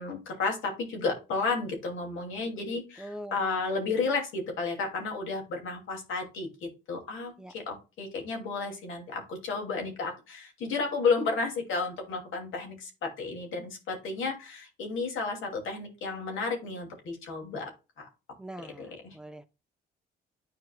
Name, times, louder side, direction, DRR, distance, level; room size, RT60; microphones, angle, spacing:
voice 1, 0.0-17.7 18.0-18.1 18.6-19.2, left 4 dB, 80° left, 2.7 m, -32 dB
voice 2, 3.0-3.3 7.4-7.5 18.4-18.9 19.1-19.5, right 1 dB, 5° right, 0.7 m, -42 dB
10.5 x 4.6 x 2.3 m
cardioid pair, 90°, 20 cm